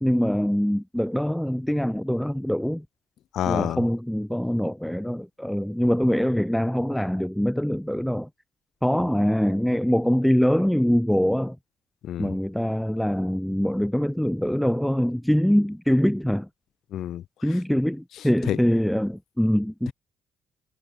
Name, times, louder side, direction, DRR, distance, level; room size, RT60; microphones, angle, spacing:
voice 1, 0.0-2.9 3.5-8.3 8.8-11.6 12.2-16.5 17.4-19.9, equal, 5° left, 0.3 m, -23 dB
voice 2, 3.3-3.8 12.0-12.3 16.9-17.2 18.5-18.6, left 11 dB, 75° left, 0.5 m, -27 dB
cardioid pair, 90°, 0 cm